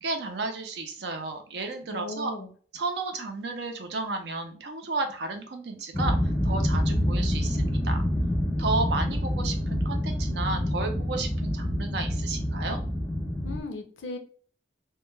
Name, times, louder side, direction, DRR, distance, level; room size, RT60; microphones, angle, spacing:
voice 1, 0.0-2.3 2.7-8.0 8.6-12.8, right 3 dB, 65° right, 5 dB, 0.5 m, -33 dB
voice 2, 1.9-2.5 13.4-14.2, left 2 dB, 85° left, 6 dB, 0.5 m, -36 dB
sound 1, 5.9-13.6, equal, 10° left, 0.3 m, -27 dB
2.2 x 2.1 x 3.1 m, 0.43 s
head